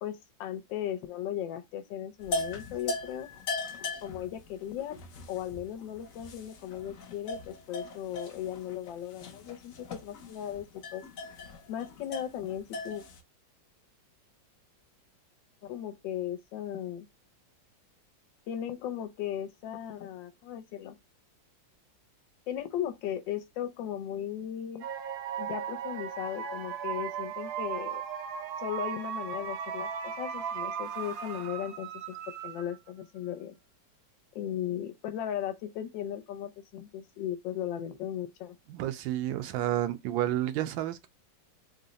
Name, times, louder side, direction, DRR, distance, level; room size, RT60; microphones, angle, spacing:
voice 1, 0.0-3.3 4.0-5.0 5.3-10.6 10.9-11.0 11.7-13.0 15.6-17.1 18.5-21.0 22.5-24.8 25.4-28.0 28.6-32.2 32.4-33.6 34.3-38.6, left 10 dB, 75° left, 1.3 m, -37 dB
sound 1, 2.2-13.2, left 2 dB, 60° left, 0.8 m, -39 dB
sound 2, 24.8-32.9, right 8 dB, 70° right, 1.0 m, -37 dB
voice 2, 38.7-41.1, right 13 dB, 85° right, 1.3 m, -30 dB
3.7 x 2.1 x 3.9 m
omnidirectional pair, 2.1 m